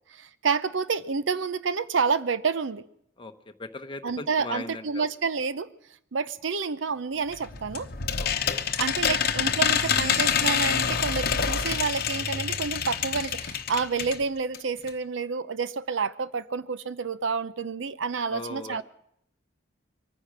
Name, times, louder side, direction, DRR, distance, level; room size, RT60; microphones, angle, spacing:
voice 1, 0.1-2.9 4.0-5.7 6.1-7.9 8.8-18.8, right 5 dB, 75° right, 0.7 m, -29 dB
voice 2, 3.6-5.0 8.2-8.7 18.3-18.8, left 2 dB, 25° left, 0.8 m, -38 dB
sound 1, 7.3-14.2 14.5-14.6 14.9-15.0, left 7 dB, 50° left, 0.9 m, -27 dB
sound 2, 9.3-10.8 11.3-13.3, right 2 dB, 25° right, 2.3 m, -44 dB
23.0 x 9.9 x 5.9 m
head